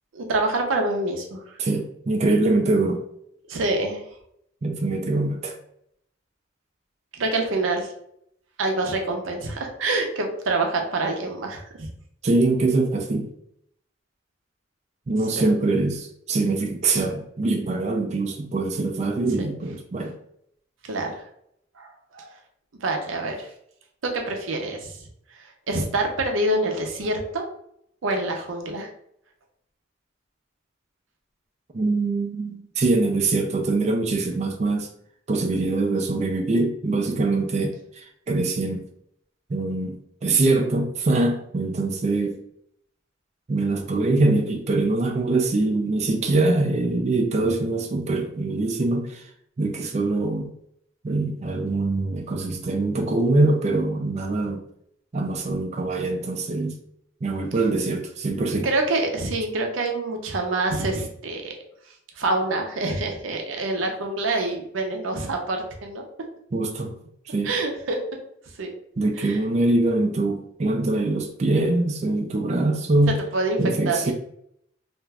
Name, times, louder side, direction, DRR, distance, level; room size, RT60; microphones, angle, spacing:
voice 1, 0.1-1.4 3.5-4.0 7.1-7.9 8.6-11.9 15.4-15.5 20.9-21.2 21.8-22.3 22.8-23.5 24.0-25.0 25.4-27.4 28.0-28.9 58.6-61.5 62.2-66.0 67.4-68.0 68.6-68.7 69.2-69.4 73.3-73.6 73.9-74.1, right 2 dB, 85° right, 3 dB, 0.6 m, -26 dB
voice 2, 1.6-3.0 4.6-5.5 12.2-13.3 15.1-20.1 31.7-34.9 35.3-38.8 39.5-42.4 43.5-49.2 49.6-50.5 51.0-54.6 55.1-56.8 57.2-58.7 66.5-66.9 67.3-67.6 69.0-73.2 73.6-74.1, right 2 dB, 35° right, 3 dB, 0.4 m, -23 dB
2.5 x 2.3 x 3.2 m, 0.71 s
head